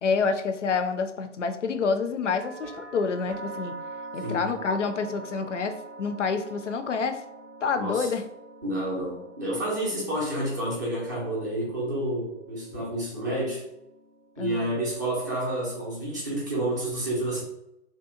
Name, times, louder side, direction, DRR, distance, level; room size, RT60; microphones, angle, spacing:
voice 1, 0.0-3.7 4.1-7.2 7.6-8.2 14.4-14.7, left 5 dB, 75° left, 9 dB, 0.5 m, -28 dB
sound 1, 2.3-16.1, right 3 dB, 70° right, 0.6 m, -45 dB
voice 2, 7.8-8.1 8.6-13.6 14.4-17.4, right 1 dB, 15° right, -5 dB, 0.4 m, -29 dB
2.8 x 2.1 x 2.4 m, 0.83 s
figure-of-eight pair, 130°, 37 cm